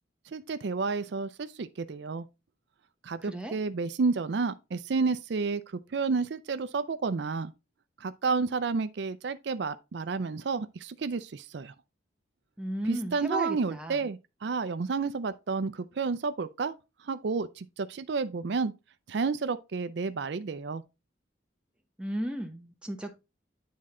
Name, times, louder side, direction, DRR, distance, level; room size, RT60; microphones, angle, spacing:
voice 1, 0.3-2.3 3.0-5.6 5.9-7.5 8.0-11.7 12.9-16.8 17.0-18.7 19.1-20.8, right 4 dB, 65° right, 0.4 m, -31 dB
voice 2, 12.6-14.0 22.0-23.1, right 1 dB, 5° right, 0.9 m, -35 dB
9.6 x 3.7 x 4.2 m
head